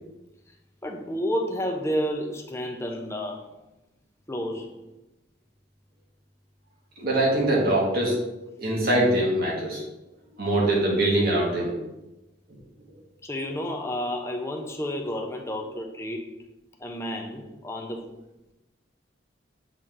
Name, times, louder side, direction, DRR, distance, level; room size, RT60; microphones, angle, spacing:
voice 1, 0.8-3.4 4.3-4.8 13.2-16.3 16.8-18.1, equal, 15° left, 2 dB, 0.8 m, -30 dB
voice 2, 7.0-8.2 8.6-9.8 10.4-11.7, right 1 dB, 60° right, -3 dB, 2.3 m, -23 dB
7.7 x 4.5 x 3.8 m, 0.96 s
head